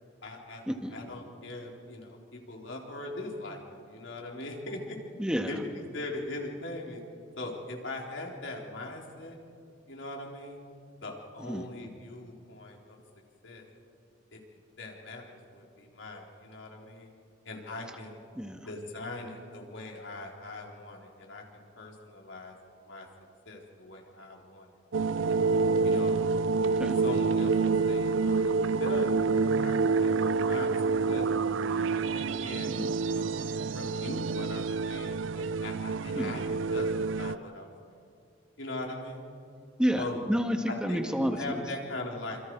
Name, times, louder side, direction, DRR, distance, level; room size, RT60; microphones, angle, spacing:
voice 1, 0.2-0.6 0.9-5.0 5.4-7.0 7.4-9.4 9.9-10.6 11.0-13.0 13.4-13.6 14.3-14.4 14.8-17.1 17.4-18.2 18.7-22.6 22.8-23.1 23.5-24.8 25.1-25.5 25.8-26.2 27.0-30.7 31.1-32.7 33.0-33.4 33.7-36.9 37.2-38.0 38.6-39.2 39.9-40.2 40.7-41.0 41.4-42.4, left 2 dB, 75° left, -1 dB, 4.0 m, -41 dB
voice 2, 5.2-5.5 11.4-11.7 18.4-18.7 26.8-27.0 32.8-32.9 36.1-36.3 39.8-41.6, equal, 5° right, 4 dB, 1.8 m, -30 dB
sound 1, 24.9-37.4, right 4 dB, 80° right, 0.5 m, -27 dB
27.5 x 27.0 x 4.8 m, 2.4 s
head